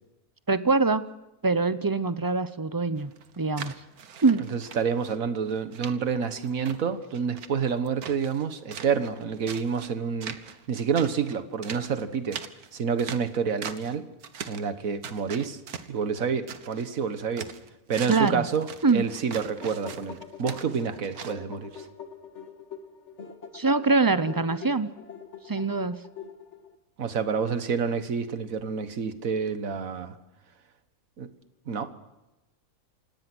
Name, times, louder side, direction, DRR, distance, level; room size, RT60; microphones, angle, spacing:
voice 1, 0.5-1.0 1.4-3.1 3.4-3.7 4.2-4.4 18.1-18.4 18.8-19.0 23.5-24.9 25.5-26.0, right 3 dB, 35° right, 13 dB, 0.3 m, -23 dB
sound 1, 3.0-5.2 5.5-5.9 6.3-8.4 8.7-9.9 10.2-10.7 10.9-13.9 14.2-14.7 15.0-16.9 17.2-21.3, right 7 dB, 90° right, 1.7 m, -41 dB
voice 2, 4.5-12.4 12.7-14.1 14.5-15.6 15.9-17.5 17.9-21.9 27.0-30.2 31.2-31.3 31.7-31.9, right 6 dB, 65° right, 11 dB, 1.8 m, -28 dB
sound 2, 19.1-26.8, left 6 dB, 50° left, 2.0 m, -43 dB
28.5 x 18.0 x 6.2 m, 0.99 s
omnidirectional pair, 1.5 m